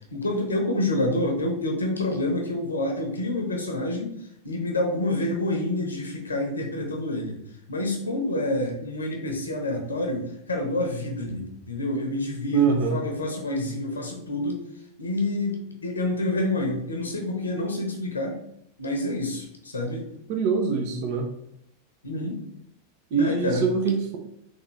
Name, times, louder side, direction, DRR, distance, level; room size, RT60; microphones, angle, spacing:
voice 1, 0.1-4.1 4.4-7.4 7.7-14.6 15.0-18.3 18.8-20.0 22.0-22.4 23.2-23.7, left 1 dB, 75° left, 2 dB, 0.8 m, -28 dB
voice 2, 12.5-13.0 20.3-21.3 23.1-24.2, right 5 dB, 45° right, 3 dB, 0.5 m, -24 dB
3.6 x 2.4 x 3.2 m, 0.72 s
figure-of-eight pair, 90°, 0 cm